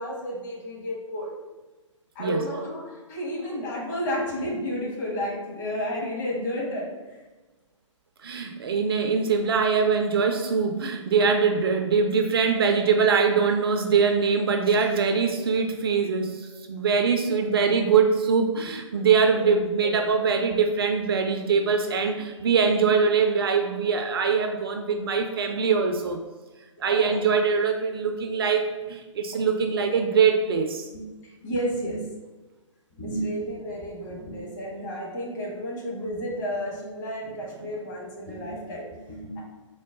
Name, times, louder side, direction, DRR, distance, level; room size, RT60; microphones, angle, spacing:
voice 1, 0.0-1.3 2.1-6.9 16.1-16.2 19.4-19.5 19.8-19.9 26.8-27.2 29.3-29.4 30.9-32.2 32.9-39.4, equal, 35° left, -3 dB, 1.1 m, -32 dB
voice 2, 8.2-26.2 26.8-30.9, right 5 dB, 50° right, 4 dB, 0.4 m, -23 dB
3.8 x 2.1 x 3.5 m, 1.2 s
figure-of-eight pair, 130°, 16 cm